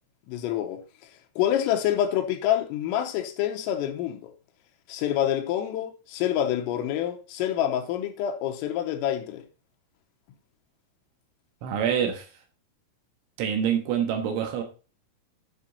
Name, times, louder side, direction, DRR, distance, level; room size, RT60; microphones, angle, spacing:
voice 1, 0.3-0.8 1.4-4.3 4.9-9.5, left 11 dB, 85° left, 3.7 m, -27 dB
voice 2, 11.6-12.3 13.4-14.6, right 8 dB, 70° right, 3.6 m, -26 dB
10.5 x 6.2 x 4.1 m
omnidirectional pair, 5.9 m